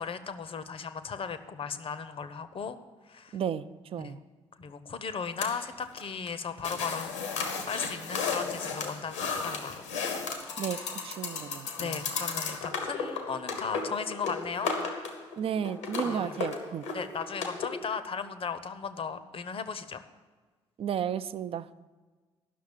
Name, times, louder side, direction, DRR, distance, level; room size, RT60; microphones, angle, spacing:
voice 1, 0.0-2.8 3.1-3.4 4.0-4.2 4.6-7.1 7.7-9.8 11.8-14.7 16.0-16.4 16.9-20.0, left 6 dB, 35° left, 12 dB, 0.8 m, -36 dB
voice 2, 3.3-4.2 10.6-12.0 15.4-16.9 20.8-21.7, right 8 dB, 40° right, 15 dB, 0.5 m, -33 dB
sound 1, 5.4-6.0 6.3-6.4 6.6-17.7, left 5 dB, 75° left, 1.2 m, -34 dB
11.0 x 6.4 x 8.3 m, 1.4 s
figure-of-eight pair, 45°, 15 cm